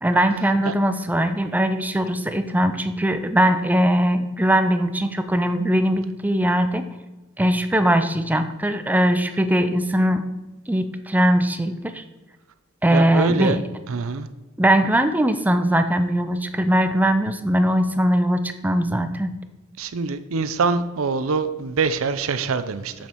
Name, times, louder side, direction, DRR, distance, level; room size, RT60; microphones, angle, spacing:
voice 1, 0.0-6.8 7.4-10.2 10.7-12.0 12.8-13.6 14.6-19.3, right 1 dB, 10° right, 9 dB, 0.5 m, -20 dB
voice 2, 12.9-13.6 13.9-14.3 19.8-22.9, right 4 dB, 65° right, 12 dB, 0.5 m, -24 dB
7.3 x 6.9 x 4.5 m, 1.1 s
head